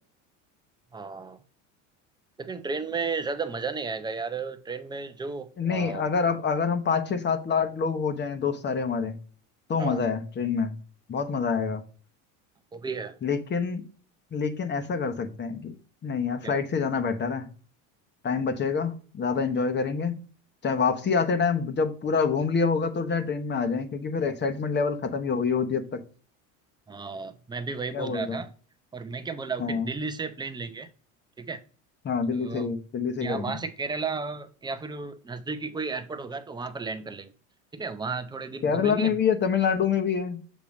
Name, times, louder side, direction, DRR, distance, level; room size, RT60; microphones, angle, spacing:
voice 1, 0.9-1.4 2.4-6.1 9.8-10.0 12.7-13.2 16.4-16.6 26.9-28.5 28.9-30.9 31.4-31.6 32.3-32.7 33.2-37.3 37.7-39.1, right 4 dB, 10° right, 10 dB, 0.6 m, -33 dB
voice 2, 5.6-9.1 9.7-10.7 11.1-11.8 13.2-13.8 14.3-15.7 16.0-17.5 18.2-20.2 20.6-26.0 27.9-28.4 29.6-29.9 32.0-33.6 38.6-40.4, left 5 dB, 30° left, 9 dB, 1.0 m, -26 dB
7.2 x 3.0 x 4.9 m, 0.40 s
supercardioid pair, 115°, 37 cm